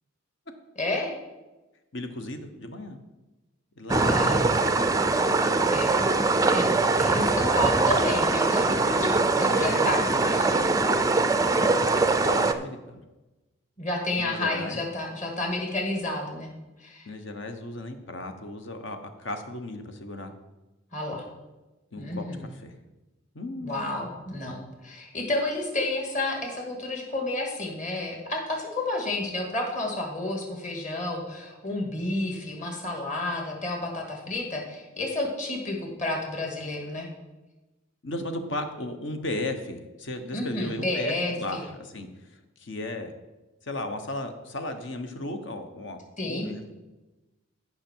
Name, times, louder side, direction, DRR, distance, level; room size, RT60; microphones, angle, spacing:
voice 1, 0.8-1.1 3.9-4.4 5.7-5.9 6.5-9.1 9.4-10.5 13.8-16.5 16.8-17.1 20.9-21.2 22.0-22.4 23.6-37.1 40.3-41.6 46.2-46.5, left 2 dB, 35° left, 0 dB, 2.1 m, -31 dB
voice 2, 1.9-3.0 3.8-4.7 6.1-6.3 9.5-10.8 11.6-13.0 14.2-14.8 17.1-20.3 21.9-22.7 23.3-24.1 38.0-43.1 43.6-46.7, left 2 dB, 60° left, 7 dB, 1.1 m, -36 dB
sound 1, 3.9-12.5, right 3 dB, 15° right, 0.4 m, -22 dB
14.5 x 5.8 x 4.6 m, 1.1 s
head